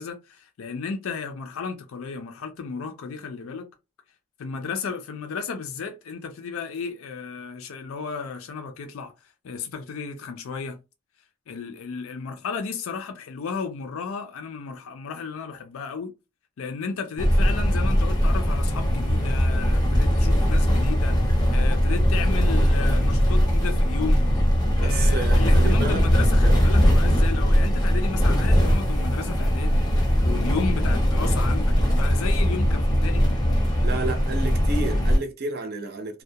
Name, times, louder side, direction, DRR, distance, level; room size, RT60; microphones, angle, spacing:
voice 1, 0.0-3.7 4.4-9.1 9.4-10.8 11.5-16.1 16.6-24.3 24.8-29.8 30.2-33.3, left 5 dB, 75° left, 0.4 m, -33 dB
sound 1, 17.2-35.2, equal, 20° left, 0.6 m, -20 dB
voice 2, 24.8-26.1 26.4-26.6 33.8-36.2, right 3 dB, 45° right, 0.5 m, -31 dB
2.2 x 2.1 x 2.7 m
head